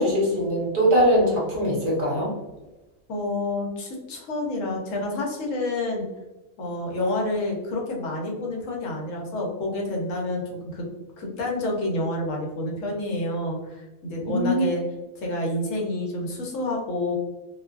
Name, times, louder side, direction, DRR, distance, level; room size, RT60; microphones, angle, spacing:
voice 1, 0.0-2.3 14.3-14.6, equal, 35° right, -4 dB, 0.8 m, -21 dB
voice 2, 3.1-6.1 6.6-10.9 11.2-14.8 15.2-17.2, left 2 dB, 70° left, -1 dB, 1.0 m, -28 dB
2.6 x 2.3 x 2.3 m, 1.1 s
omnidirectional pair, 1.4 m